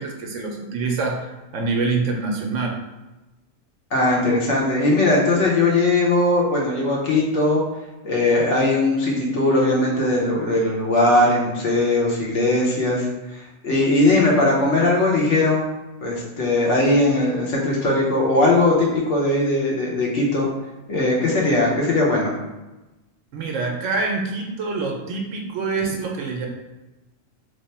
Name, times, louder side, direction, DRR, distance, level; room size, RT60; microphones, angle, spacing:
voice 1, 0.0-2.8 23.3-26.5, right 3 dB, 75° right, 2 dB, 0.9 m, -26 dB
voice 2, 3.9-7.6 8.0-13.1 13.3-15.6 16.0-20.5 20.9-22.4, left 2 dB, 65° left, -2 dB, 1.1 m, -19 dB
3.2 x 2.0 x 4.2 m, 1.1 s
omnidirectional pair, 1.4 m